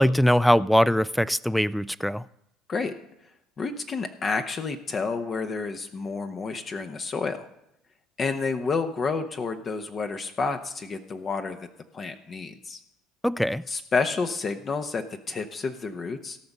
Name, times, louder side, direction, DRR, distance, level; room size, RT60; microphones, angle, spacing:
voice 1, 0.0-2.2 13.2-13.6, equal, ahead, 20 dB, 0.3 m, -21 dB
voice 2, 3.6-7.4 8.2-11.7 11.9-12.8 13.7-16.4, left 4 dB, 35° left, 7 dB, 0.9 m, -30 dB
17.5 x 5.9 x 5.4 m, 0.83 s
supercardioid pair, 90°, 0 cm